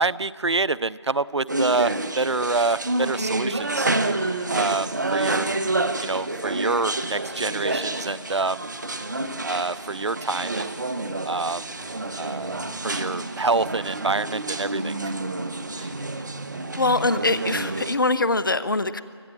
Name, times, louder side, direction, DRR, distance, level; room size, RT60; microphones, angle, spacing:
voice 1, 0.0-3.9 4.5-5.5 6.0-8.6 9.4-10.7 11.2-11.6 12.2-14.9 15.8-15.9, right 3 dB, 75° right, 20 dB, 0.5 m, -26 dB
sound 1, 1.5-18.0, right 2 dB, 40° right, 1.0 m, -28 dB
voice 2, 16.8-19.0, left 2 dB, 45° left, 15 dB, 0.9 m, -23 dB
25.5 x 16.5 x 7.7 m, 2.2 s
figure-of-eight pair, 170°, 15 cm